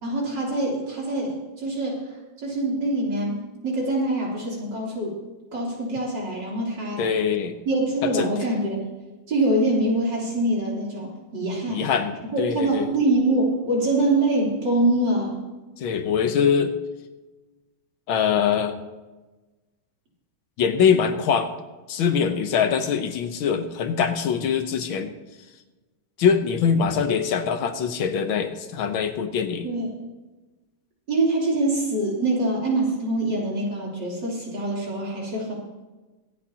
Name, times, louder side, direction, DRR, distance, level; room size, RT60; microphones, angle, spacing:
voice 1, 0.0-2.2 2.4-5.2 5.5-7.0 7.7-8.9 9.3-11.8 12.3-15.4 29.6-30.0 31.1-35.5, right 2 dB, 60° right, -5 dB, 4.0 m, -24 dB
voice 2, 7.0-7.6 8.0-8.3 11.7-12.9 15.8-16.7 18.1-18.8 20.6-21.5 21.9-25.1 26.2-29.7, left 7 dB, 80° left, 8 dB, 1.7 m, -23 dB
24.5 x 8.6 x 2.9 m, 1.2 s
omnidirectional pair, 2.2 m